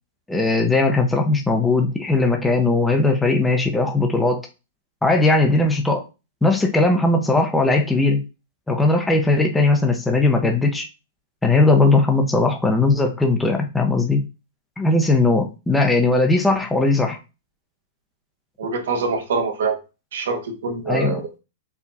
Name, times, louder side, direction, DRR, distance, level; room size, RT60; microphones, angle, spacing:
voice 1, 0.3-4.5 5.0-6.0 6.4-8.2 8.7-10.9 11.4-14.2 14.8-17.2 20.9-21.4, left 2 dB, 5° left, 3 dB, 0.6 m, -18 dB
voice 2, 18.6-19.8 20.1-21.3, right 4 dB, 75° right, 3 dB, 1.3 m, -24 dB
4.6 x 2.3 x 4.0 m, 0.28 s
supercardioid pair, 160°, 0 cm